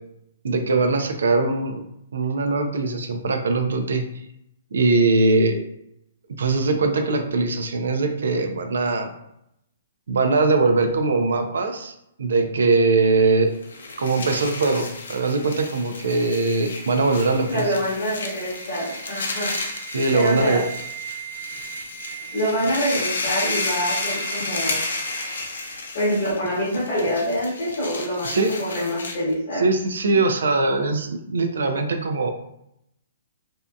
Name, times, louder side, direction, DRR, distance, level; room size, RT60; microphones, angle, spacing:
voice 1, 0.4-1.8 2.1-4.0 4.7-5.6 6.4-9.1 10.1-13.5 14.0-17.7 19.9-20.6 28.2-28.5 29.6-32.3, right 3 dB, 85° right, 6 dB, 0.4 m, -21 dB
sound 1, 13.5-29.3, left 3 dB, 85° left, 0.5 m, -32 dB
voice 2, 17.5-19.5 20.1-20.7 22.3-24.8 25.9-29.6, equal, 40° left, -8 dB, 0.9 m, -25 dB
sound 2, 18.2-26.1 26.3-26.5, right 10 dB, 15° right, 0.6 m, -39 dB
2.6 x 2.4 x 2.2 m, 0.78 s
hypercardioid pair, 175°, 0 cm